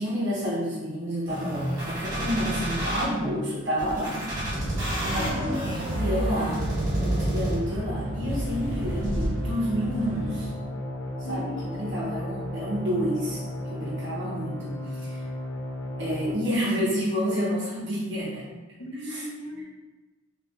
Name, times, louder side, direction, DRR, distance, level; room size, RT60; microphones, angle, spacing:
voice 1, 0.0-4.3 5.0-6.6 6.9-10.5 11.3-11.4 11.7-13.4 13.7-15.2 16.0-18.5 19.0-19.2, equal, 60° right, -7 dB, 1.0 m, -29 dB
sound 1, 1.3-3.0 3.8-7.8 8.3-9.3, right 1 dB, 20° right, 1.3 m, -30 dB
sound 2, 4.3-10.5, right 1 dB, 85° right, 0.4 m, -32 dB
voice 2, 5.1-5.8 11.2-11.7 18.8-19.6, left 1 dB, 80° left, -3 dB, 0.9 m, -36 dB
sound 3, 6.9-16.3, left 1 dB, 15° left, 0.5 m, -35 dB
3.3 x 3.1 x 3.2 m, 1.2 s
head